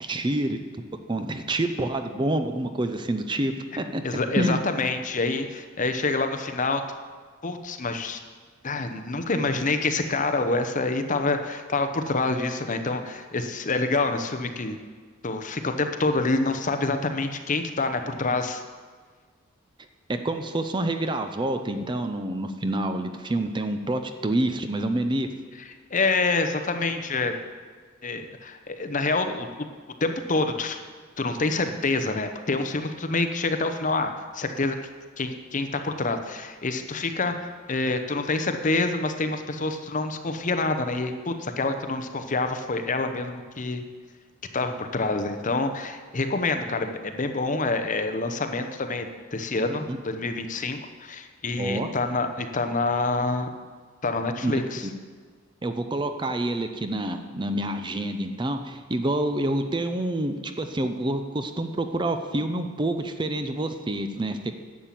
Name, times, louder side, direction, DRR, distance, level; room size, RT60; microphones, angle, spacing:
voice 1, 0.0-0.8 1.1-4.0 4.4-4.6 20.2-25.3 49.9-50.0 51.6-51.9 54.4-54.6 55.6-64.6, right 1 dB, 25° right, 7 dB, 0.6 m, -27 dB
voice 2, 4.0-6.8 7.4-8.2 8.6-14.8 15.2-18.6 25.9-27.3 28.0-29.6 30.0-30.8 31.2-34.8 35.2-43.8 44.5-53.5 54.0-54.9, left 3 dB, 40° left, 7 dB, 0.8 m, -27 dB
11.0 x 7.4 x 7.5 m, 1.5 s
head